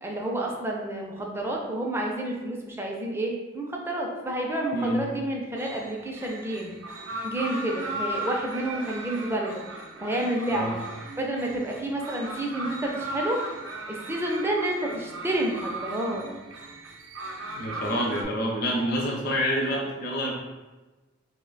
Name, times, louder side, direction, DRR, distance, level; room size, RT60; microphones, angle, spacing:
voice 1, 0.0-6.7 7.2-9.6 10.0-10.8 11.2-13.4 13.9-16.3, right 1 dB, 10° right, -1 dB, 0.4 m, -29 dB
sound 1, 5.6-18.2, right 1 dB, 80° right, 0.5 m, -37 dB
voice 2, 17.6-20.3, equal, 50° left, -2 dB, 0.5 m, -27 dB
2.9 x 2.1 x 3.8 m, 1.2 s
head